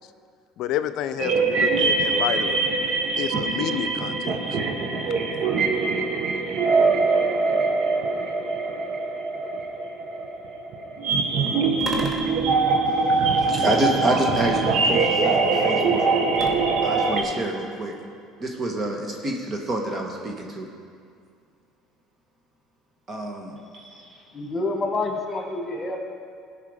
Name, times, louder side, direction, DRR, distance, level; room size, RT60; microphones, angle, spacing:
voice 1, 0.6-2.6 3.2-4.6, left 10 dB, 65° left, 0.5 m, -29 dB
sound 1, 1.2-17.2, right 3 dB, 55° right, 1.2 m, -23 dB
sound 2, 11.8-13.2 14.3-15.2 16.4-17.3, equal, 20° right, 1.4 m, -37 dB
voice 2, 12.9-16.1 16.8-17.9 18.4-20.7 23.1-24.1, right 1 dB, 35° right, 1.4 m, -28 dB
voice 3, 24.3-26.0, left 2 dB, 25° left, 2.0 m, -27 dB
15.5 x 5.7 x 5.0 m
supercardioid pair, 90°, 0 cm